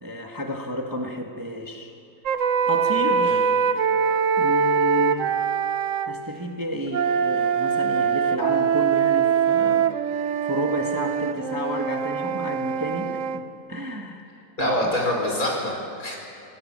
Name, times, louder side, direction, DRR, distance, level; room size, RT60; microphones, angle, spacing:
voice 1, 0.0-1.9 2.7-3.4 4.4-5.4 6.0-10.0 10.4-13.4 13.7-14.2 14.6-15.1, equal, 15° right, 2 dB, 1.5 m, -31 dB
sound 1, 2.3-6.1 6.9-13.4, right 7 dB, 60° right, 1.1 m, -23 dB
voice 2, 14.6-16.2, left 1 dB, 60° left, 0 dB, 5.3 m, -26 dB
26.5 x 18.5 x 7.4 m, 2.8 s
omnidirectional pair, 1.7 m